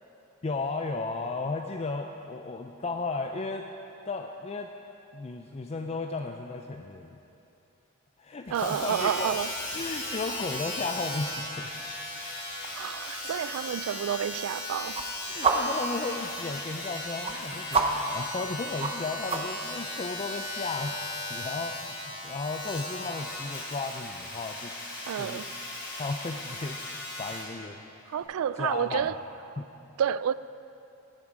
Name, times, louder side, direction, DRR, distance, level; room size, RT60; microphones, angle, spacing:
voice 1, 0.4-3.7 4.1-4.7 5.1-7.2 8.2-9.4 9.7-11.8 15.2-21.0 21.3-24.7 25.1-25.4 26.0-26.8 27.2-28.1 28.6-29.1 29.6-29.7, left 3 dB, 30° left, 0.4 m, -34 dB
Domestic sounds home sounds, 8.5-27.5 28.2-28.3, left 2 dB, 55° left, 3.6 m, -37 dB
sound 1, 8.5-19.7, right 3 dB, 30° right, 0.7 m, -35 dB
voice 2, 8.5-9.5 12.7-15.0 25.1-25.6 28.1-29.1 30.0-30.3, right 9 dB, 75° right, 0.3 m, -29 dB
17.5 x 8.9 x 4.8 m
head